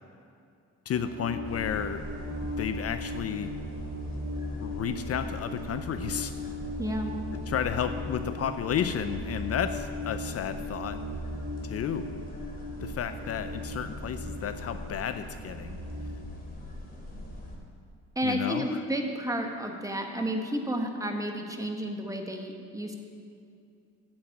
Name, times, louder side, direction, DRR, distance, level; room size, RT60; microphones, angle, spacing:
voice 1, 0.9-2.0 2.6-3.5 4.6-6.3 7.5-11.0 11.6-12.1 12.8-15.8 18.2-18.8, left 8 dB, 55° left, 10 dB, 0.5 m, -32 dB
sound 1, 0.9-16.1, left 1 dB, 90° right, 2.3 m, -38 dB
sound 2, 1.4-17.6, left 1 dB, 30° left, 2.9 m, -43 dB
voice 2, 6.8-7.1 18.1-23.0, equal, 10° right, 3 dB, 1.4 m, -31 dB
8.6 x 7.8 x 8.5 m, 2.5 s
cardioid pair, 90°, 30 cm